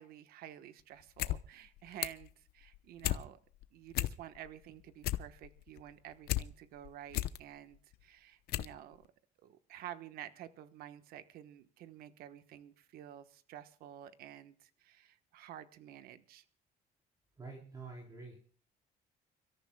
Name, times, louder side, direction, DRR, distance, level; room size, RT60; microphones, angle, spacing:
voice 1, 0.0-3.4 3.7-9.1 9.4-16.4, right 11 dB, 70° right, 11 dB, 1.2 m, -51 dB
sound 1, 1.0-1.4 1.7-2.3 2.7-3.2 3.6-3.7 3.9-4.5 4.8-6.4 6.8-7.4 7.9-8.0 8.5-8.8 9.0-9.1, left 15 dB, 75° left, 0.8 m, -34 dB
voice 2, 17.4-18.4, right 3 dB, 25° right, -1 dB, 3.8 m, -47 dB
30.0 x 13.5 x 2.3 m, 0.44 s
cardioid pair, 160°, 16 cm